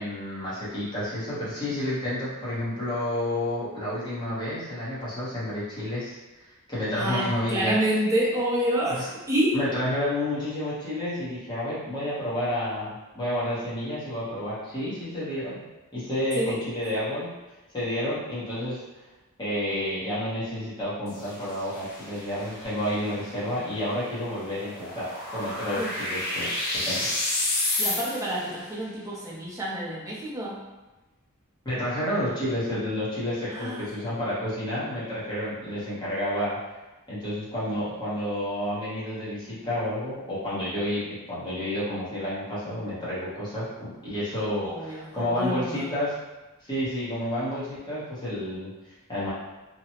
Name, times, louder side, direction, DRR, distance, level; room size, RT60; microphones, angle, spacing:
voice 1, 0.0-7.7 9.5-15.6 15.9-17.3 17.7-18.8 19.4-25.8 26.1-26.5 26.8-27.1 31.6-36.6 37.1-46.1 46.6-48.7 49.1-49.3, left 1 dB, 20° left, -10 dB, 0.9 m, -30 dB
voice 2, 6.9-9.6 16.3-16.6 25.8-25.9 27.8-30.6 33.5-33.9 44.6-45.9, right 1 dB, 15° right, -6 dB, 0.7 m, -28 dB
sound 1, 21.1-28.5, left 2 dB, 45° left, 0.6 m, -32 dB
2.9 x 2.2 x 2.8 m, 1.1 s
head